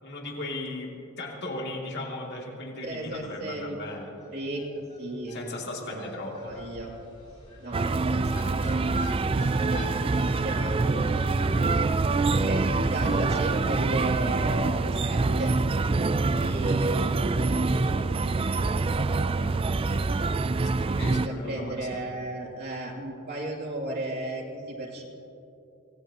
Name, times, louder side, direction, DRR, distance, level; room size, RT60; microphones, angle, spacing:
voice 1, 0.0-4.1 5.3-6.5 21.0-22.0, left 2 dB, 55° left, -1 dB, 2.7 m, -37 dB
voice 2, 2.8-3.8 4.3-5.5 5.9-6.9 7.6-8.9 9.3-12.0 12.4-15.5 15.9-20.3 20.9-25.1, right 1 dB, 50° right, -3 dB, 3.0 m, -35 dB
sound 1, 3.1-3.2 3.4-3.5 3.8-11.8, left 2 dB, 35° left, 3.4 m, -46 dB
sound 2, 7.7-21.3, right 3 dB, 25° right, 0.3 m, -25 dB
26.0 x 18.0 x 3.0 m, 2.8 s
head